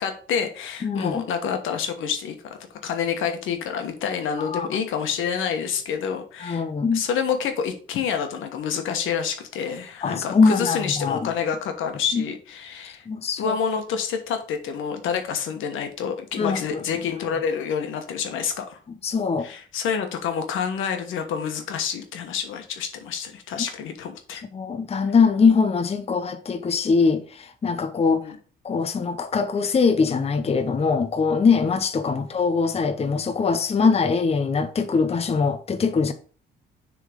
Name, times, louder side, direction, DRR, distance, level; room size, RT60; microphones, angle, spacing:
voice 1, 0.0-2.6 2.8-6.6 6.9-13.1 13.4-18.8 19.4-24.4 28.2-28.3, left 7 dB, 85° left, 1.3 m, -28 dB
voice 2, 0.8-1.2 4.4-4.7 6.4-7.0 10.0-11.3 12.1-12.2 13.1-13.6 16.4-16.8 19.0-19.5 24.5-28.3 28.6-36.1, left 5 dB, 30° left, 0.7 m, -22 dB
6.7 x 3.8 x 5.0 m
cardioid pair, 90°, 20 cm